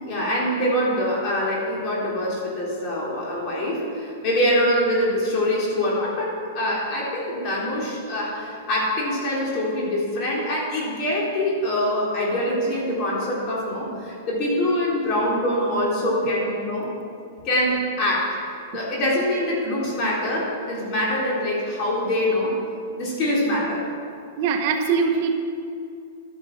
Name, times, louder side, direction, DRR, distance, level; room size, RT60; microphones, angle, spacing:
voice 1, 0.0-16.9 17.4-22.6 23.0-23.8, left 1 dB, 35° left, -4 dB, 4.0 m, -24 dB
voice 2, 24.4-25.4, right 5 dB, 45° right, 4 dB, 1.1 m, -22 dB
12.5 x 9.8 x 6.2 m, 2.5 s
supercardioid pair, 160°, 0 cm